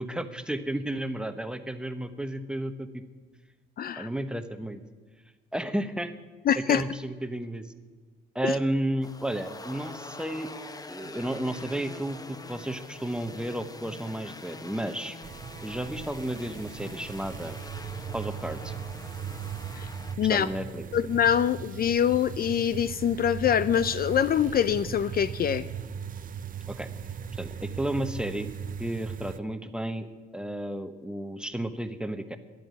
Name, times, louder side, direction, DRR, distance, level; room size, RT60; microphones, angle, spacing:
voice 1, 0.0-3.0 4.0-4.8 5.5-6.1 6.6-7.7 8.3-10.5 10.9-15.2 15.6-17.6 18.1-18.7 20.2-20.9 26.7-26.9 27.4-28.5 28.8-30.1 30.3-32.4, right 1 dB, 5° right, 9 dB, 1.0 m, -32 dB
voice 2, 3.8-4.1 6.5-6.9 8.4-8.5 19.8-19.9 20.2-20.5 20.9-25.7, left 9 dB, 50° left, 15 dB, 0.5 m, -24 dB
sound 1, 9.0-20.2, left 3 dB, 20° left, 0.9 m, -44 dB
sound 2, 15.2-29.4, right 7 dB, 45° right, 0.6 m, -38 dB
11.0 x 8.9 x 9.4 m, 1.4 s
cardioid pair, 90°, 20 cm